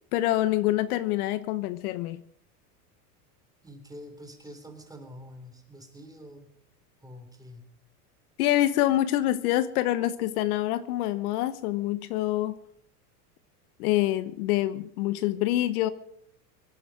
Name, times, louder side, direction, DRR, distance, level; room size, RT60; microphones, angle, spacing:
voice 1, 0.1-2.2 8.4-12.6 13.8-15.9, left 14 dB, 65° left, 13 dB, 1.1 m, -26 dB
voice 2, 3.6-6.5 7.0-7.7, equal, 10° right, 6 dB, 3.5 m, -46 dB
24.5 x 10.0 x 5.0 m, 0.70 s
supercardioid pair, 115°, 47 cm